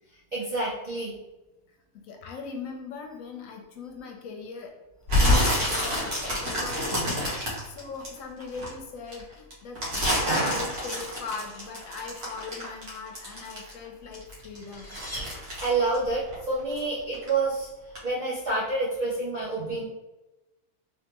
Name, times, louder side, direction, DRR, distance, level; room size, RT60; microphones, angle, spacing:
voice 1, 0.3-1.1 10.2-10.9 15.6-17.7 18.0-19.9, right 2 dB, 50° right, -7 dB, 0.5 m, -28 dB
voice 2, 2.0-4.7 5.1-14.9, left 5 dB, 70° left, 3 dB, 0.9 m, -40 dB
sound 1, 5.1-8.7 9.1-13.9 14.1-16.8 17.1-17.5 17.9-18.0, left 1 dB, 65° right, 1.6 m, -27 dB
sound 2, 14.0-16.1, equal, 20° right, 0.9 m, -42 dB
3.3 x 3.0 x 2.9 m, 1.0 s
omnidirectional pair, 1.6 m